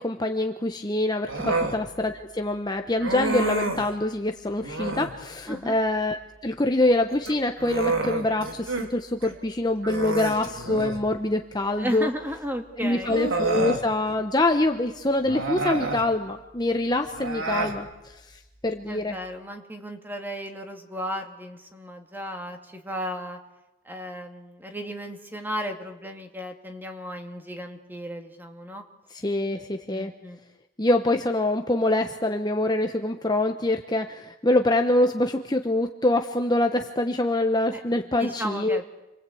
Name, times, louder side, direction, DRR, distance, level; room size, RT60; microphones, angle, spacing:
voice 1, 0.0-12.1 12.8-18.2 18.6-19.2 29.2-30.1 30.8-38.8, left 2 dB, 20° left, 5 dB, 1.0 m, -25 dB
Human voice, 1.3-1.8 3.0-3.9 4.6-5.2 7.1-8.9 9.2-9.3 9.8-11.1 12.3-12.4 13.0-13.8 15.2-16.1 17.1-17.8, right 2 dB, 75° right, 3.3 m, -28 dB
voice 2, 11.8-13.2 18.9-23.4 23.8-28.8 29.9-30.4 37.7-39.0, equal, 10° right, 4 dB, 2.3 m, -35 dB
29.0 x 23.0 x 8.6 m, 1.0 s
head